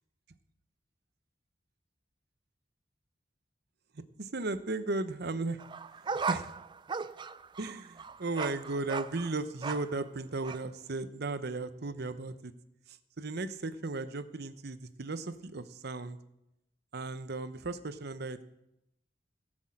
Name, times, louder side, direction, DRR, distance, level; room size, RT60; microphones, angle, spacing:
voice 1, 4.2-5.6 6.3-6.5 7.6-12.5 13.2-16.2 16.9-18.4, right 3 dB, 60° right, 12 dB, 0.8 m, -35 dB
sound 1, 5.6-10.0 10.4-10.6, right 5 dB, 25° right, 0.4 m, -37 dB
17.0 x 6.3 x 7.5 m, 0.85 s
head